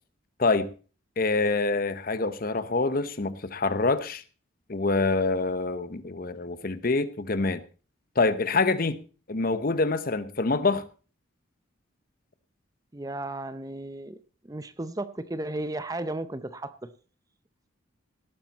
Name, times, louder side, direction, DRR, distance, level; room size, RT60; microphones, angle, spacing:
voice 1, 1.2-4.2 4.7-7.6 8.2-9.0 9.3-10.9, left 3 dB, 45° left, 13 dB, 0.8 m, -26 dB
voice 2, 12.9-14.2 14.4-16.9, right 2 dB, 15° right, 13 dB, 0.6 m, -34 dB
18.0 x 8.8 x 4.1 m, 0.37 s
head